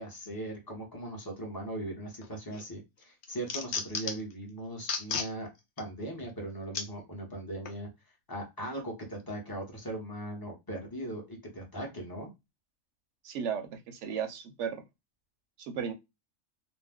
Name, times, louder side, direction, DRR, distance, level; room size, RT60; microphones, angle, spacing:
voice 1, 0.0-5.5 5.8-7.9 8.3-12.3, right 1 dB, 20° left, 0.7 m, -39 dB
sound 1, 2.2-2.6 3.0-4.3 4.8-5.3 5.8-5.9 6.7-6.9 7.7-7.8, left 5 dB, 85° left, 0.4 m, -34 dB
voice 2, 13.2-14.8 15.6-15.9, right 7 dB, 65° right, 0.8 m, -35 dB
2.5 x 2.1 x 3.4 m
omnidirectional pair, 1.5 m